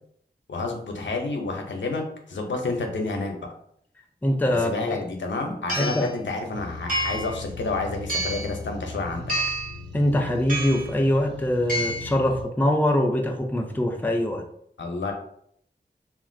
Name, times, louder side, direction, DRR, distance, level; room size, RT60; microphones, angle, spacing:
voice 1, 0.5-2.0 2.3-3.5 4.5-9.3 14.8-15.1, left 3 dB, 85° left, 0.5 m, -29 dB
voice 2, 4.2-4.7 5.8-6.1 9.9-14.4, left 1 dB, 10° left, 0.4 m, -23 dB
sound 1, 4.9-5.0 5.7-6.1 6.9-7.4 8.1-8.5 9.3-9.8 10.5-10.9 11.7-12.1, right 1 dB, 50° right, 1.1 m, -28 dB
sound 2, 6.5-12.4, left 2 dB, 70° right, 0.6 m, -38 dB
2.9 x 2.4 x 2.5 m
wide cardioid pair, 60°, 19 cm